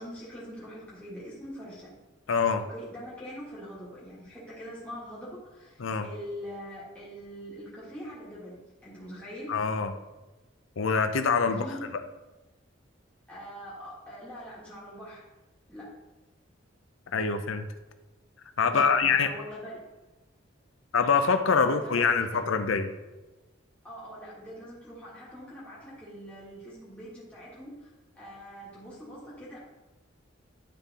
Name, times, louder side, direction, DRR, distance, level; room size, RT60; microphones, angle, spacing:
voice 1, 0.0-1.9 2.6-9.5 11.5-11.9 13.3-15.2 15.7-15.9 18.6-19.9 21.5-22.4 23.8-29.6, equal, 5° left, -9 dB, 1.8 m, -43 dB
voice 2, 2.3-2.6 5.8-6.1 9.5-9.9 10.8-11.7 17.1-17.7 18.6-19.3 20.9-22.9, left 5 dB, 80° left, 9 dB, 0.5 m, -25 dB
10.0 x 3.8 x 4.1 m, 1.1 s
head